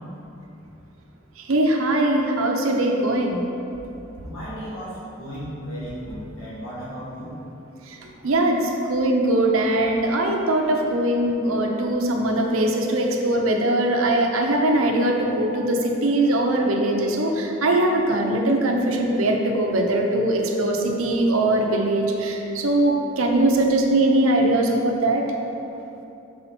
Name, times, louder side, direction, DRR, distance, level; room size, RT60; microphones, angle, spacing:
voice 1, 1.5-3.4 7.9-8.0 8.2-8.6 8.9-25.2, right 1 dB, 90° right, 1 dB, 0.7 m, -21 dB
voice 2, 4.2-7.3 8.1-8.3, equal, 70° left, -10 dB, 1.4 m, -35 dB
5.6 x 4.9 x 4.3 m, 2.9 s
head